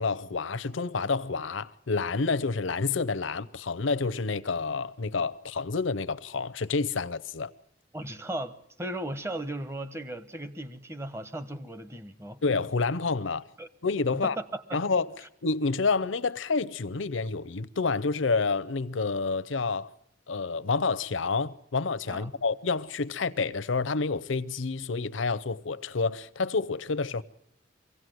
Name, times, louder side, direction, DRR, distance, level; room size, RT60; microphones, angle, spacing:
voice 1, 0.0-7.5 12.4-13.5 13.8-14.4 14.7-15.1 15.4-19.9 20.3-27.2, left 4 dB, 80° left, 0.7 m, -29 dB
voice 2, 7.9-12.4 13.6-13.7 14.2-14.8 22.1-22.3, right 1 dB, 15° right, 0.9 m, -36 dB
23.5 x 16.5 x 7.9 m
head